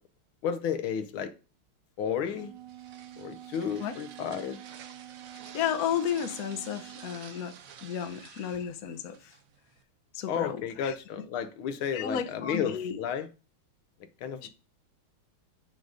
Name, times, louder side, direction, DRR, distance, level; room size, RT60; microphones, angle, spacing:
voice 1, 0.4-1.3 2.0-2.5 3.2-4.6 10.3-13.3 14.2-14.5, left 8 dB, 80° left, 1.7 m, -32 dB
Wind instrument woodwind instrument, 2.1-7.3, right 13 dB, 90° right, 1.6 m, -48 dB
sound 1, 2.3-9.8, right 8 dB, 65° right, 0.8 m, -50 dB
voice 2, 5.5-7.6 7.8-9.3 10.1-10.9 11.9-13.0 14.4-14.5, left 8 dB, 60° left, 1.0 m, -33 dB
7.8 x 4.0 x 4.9 m
omnidirectional pair, 2.3 m